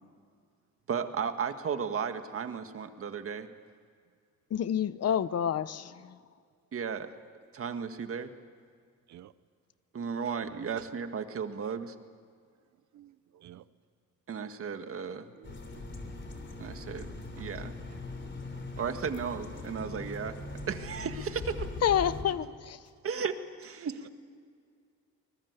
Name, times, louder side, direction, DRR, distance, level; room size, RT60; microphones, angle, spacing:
voice 1, 0.9-3.5 6.7-7.1 7.5-8.3 9.9-12.0 14.3-15.3 16.6-17.8 18.8-20.4 20.7-21.7 23.0-24.1, right 6 dB, 45° right, 8 dB, 1.8 m, -35 dB
voice 2, 4.5-6.2 21.8-22.8, left 9 dB, 55° left, 15 dB, 0.9 m, -28 dB
voice 3, 10.5-10.9 12.9-13.7 15.3-15.9 17.3-17.5 18.5-18.6 22.3-22.5, right 13 dB, 70° right, 15 dB, 0.8 m, -52 dB
sound 1, 15.4-22.2, left 3 dB, 40° left, 3.4 m, -41 dB
24.5 x 21.0 x 8.2 m, 2.1 s
cardioid pair, 90°, 30 cm